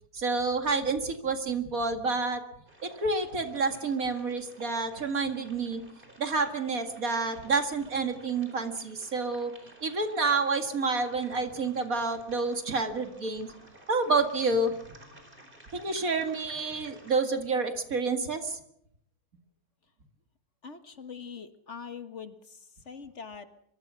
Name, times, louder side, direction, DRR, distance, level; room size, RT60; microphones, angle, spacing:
voice 1, 0.1-2.4 2.8-5.8 6.2-9.5 9.8-13.5 13.9-14.7 15.7-18.6, right 3 dB, 65° right, 6 dB, 2.6 m, -29 dB
sound 1, 2.7-17.2, right 1 dB, 35° right, 4.8 m, -54 dB
voice 2, 20.6-22.3 22.9-23.5, left 6 dB, 50° left, 9 dB, 1.6 m, -42 dB
24.0 x 23.5 x 6.3 m, 0.76 s
omnidirectional pair, 1.6 m